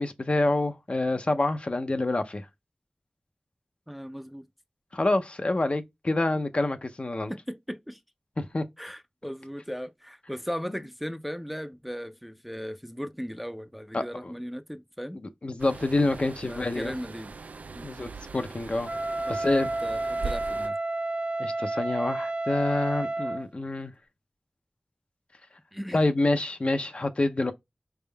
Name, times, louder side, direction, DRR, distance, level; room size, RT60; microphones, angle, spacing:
voice 1, 0.0-2.5 4.9-7.3 8.4-8.7 13.9-14.3 15.4-17.0 17.8-18.9 19.3-19.7 21.4-23.9 25.9-27.5, left 2 dB, 50° left, 0.5 m, -27 dB
voice 2, 3.9-4.5 7.3-8.0 8.8-15.2 16.4-17.4 17.7-17.9 19.3-20.8 25.7-26.1, equal, ahead, 0.4 m, -37 dB
sound 1, 15.6-20.7, right 4 dB, 85° right, 0.3 m, -41 dB
Wind instrument woodwind instrument, 18.8-23.5, right 2 dB, 65° right, 0.8 m, -30 dB
4.3 x 3.5 x 2.2 m
wide cardioid pair, 45°, 3 cm